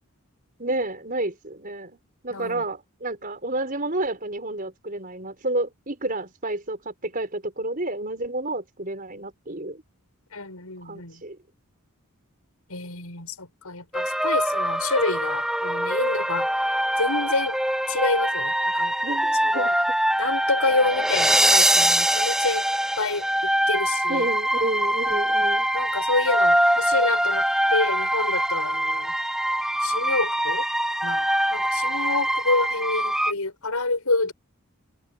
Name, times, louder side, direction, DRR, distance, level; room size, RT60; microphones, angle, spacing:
voice 1, 0.6-2.0 2.2-9.8 10.8-11.4 19.0-19.7 24.1-25.7, right 2 dB, 40° right, 5.3 m, -30 dB
voice 2, 2.3-2.6 10.3-11.2 12.7-17.6 17.9-18.9 19.4-19.7 20.2-22.7 23.0-23.3 23.7-24.3 25.7-29.1 29.8-30.7 31.0-34.3, left 3 dB, 85° left, 7.0 m, -28 dB
sound 1, 13.9-33.3, right 1 dB, ahead, 0.7 m, -23 dB
head